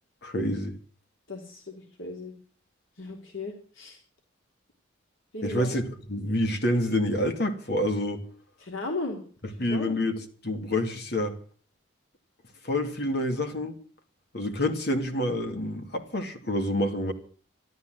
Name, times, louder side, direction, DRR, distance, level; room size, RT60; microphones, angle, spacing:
voice 1, 0.2-0.7 5.4-8.2 9.6-10.2 10.4-11.4 12.6-13.8 14.3-17.1, left 1 dB, 55° left, 2.7 m, -27 dB
voice 2, 1.3-2.3 3.0-4.0 5.3-5.8 8.6-9.2 9.7-10.0, left 2 dB, 75° left, 3.6 m, -36 dB
13.0 x 12.5 x 7.8 m
head